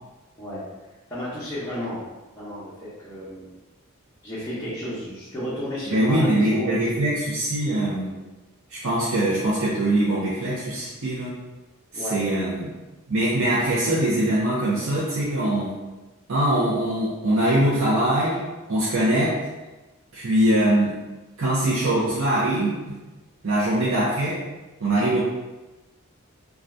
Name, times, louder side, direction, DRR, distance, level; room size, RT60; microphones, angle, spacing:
voice 1, 1.1-2.0 2.3-3.4 4.2-7.0 11.9-12.6, equal, 15° left, -13 dB, 0.7 m, -32 dB
voice 2, 5.9-8.1 8.7-11.3 11.9-12.7 13.1-15.7 16.3-18.4 18.7-19.4 20.1-21.0 21.4-23.0 23.4-24.4 24.8-25.2, right 1 dB, 65° right, -8 dB, 0.6 m, -22 dB
2.6 x 2.3 x 3.3 m, 1.2 s
head